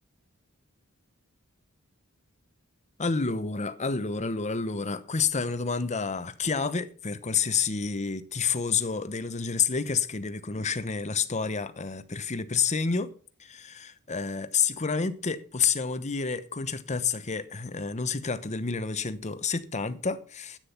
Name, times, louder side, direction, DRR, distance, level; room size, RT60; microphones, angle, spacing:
voice 1, 3.0-13.1 13.4-20.6, left 5 dB, 30° left, 0.9 m, -29 dB
10.5 x 9.1 x 5.7 m
head